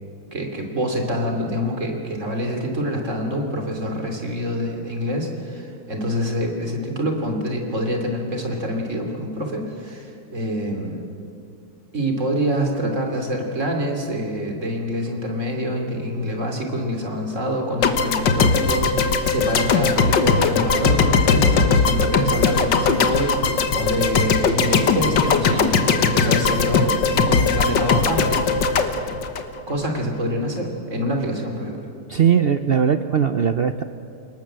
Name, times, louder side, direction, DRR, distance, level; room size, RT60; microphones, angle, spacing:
voice 1, 0.3-11.0 11.9-28.8 29.7-31.8, equal, 40° right, 3 dB, 3.3 m, -26 dB
sound 1, 17.8-30.0, left 5 dB, 85° left, 2.0 m, -19 dB
voice 2, 32.1-33.8, right 7 dB, 70° right, 10 dB, 0.5 m, -19 dB
29.0 x 19.0 x 7.6 m, 2.5 s
omnidirectional pair, 1.9 m